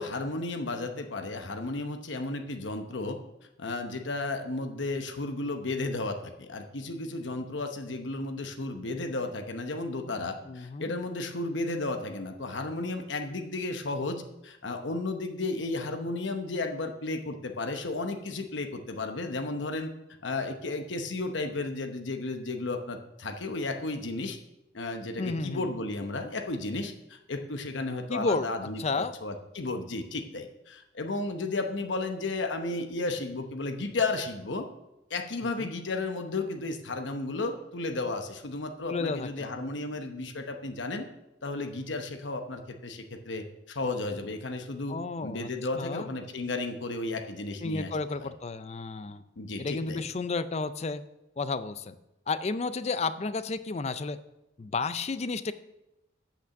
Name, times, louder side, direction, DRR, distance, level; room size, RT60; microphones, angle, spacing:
voice 1, 0.0-3.2 3.6-19.9 20.2-24.4 24.7-34.7 35.1-41.1 41.4-45.0 45.2-47.9 48.2-48.3 49.4-50.0, left 2 dB, 80° left, 5 dB, 0.9 m, -33 dB
voice 2, 10.5-10.9 25.2-25.6 28.1-28.5 28.8-29.1 35.6-35.7 38.9-39.5 44.9-45.5 45.8-46.1 47.6-49.2 49.6-51.0 51.4-51.9 52.3-54.2 54.6-55.5, left 3 dB, 35° left, 13 dB, 0.4 m, -32 dB
8.3 x 6.0 x 7.0 m, 0.93 s
head